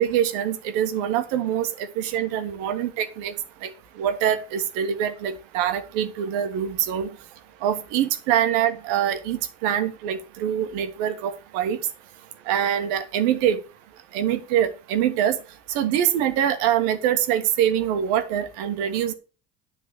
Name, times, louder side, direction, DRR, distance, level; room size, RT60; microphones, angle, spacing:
voice 1, 0.0-3.3 3.6-3.7 4.0-7.1 7.6-11.8 12.5-13.6 14.1-15.4 15.7-19.1, right 10 dB, 70° right, 10 dB, 1.3 m, -24 dB
10.0 x 4.0 x 6.9 m, 0.35 s
hypercardioid pair, 60°, 37 cm